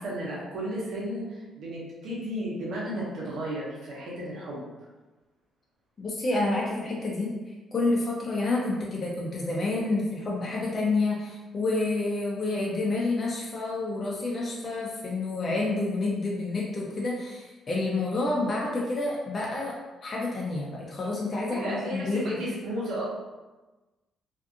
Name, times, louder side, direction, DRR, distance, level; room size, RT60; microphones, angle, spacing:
voice 1, 0.0-4.6 21.5-23.1, equal, 75° right, -6 dB, 0.9 m, -33 dB
voice 2, 6.0-7.3 7.7-19.7 20.0-22.2, left 2 dB, 40° left, -4 dB, 0.5 m, -29 dB
2.5 x 2.4 x 2.5 m, 1.2 s
cardioid pair, 90°, 0 cm